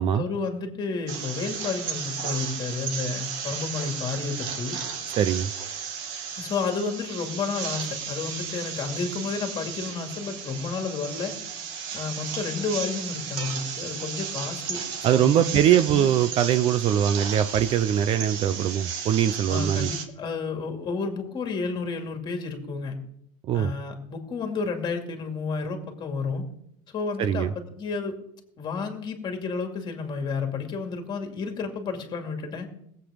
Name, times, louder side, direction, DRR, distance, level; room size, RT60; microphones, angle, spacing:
voice 1, 0.2-4.8 6.4-11.3 11.9-14.8 15.1-16.1 19.5-23.0 23.5-26.4 26.9-28.1 28.6-32.7, left 4 dB, 25° left, 4 dB, 2.3 m, -31 dB
sound 1, 1.1-20.0, right 7 dB, 65° right, 2.0 m, -34 dB
voice 2, 5.2-5.5 15.0-19.9 23.5-23.7 27.2-27.5, right 10 dB, 35° right, 13 dB, 0.5 m, -22 dB
19.5 x 8.1 x 5.1 m, 0.74 s
supercardioid pair, 150°, 17 cm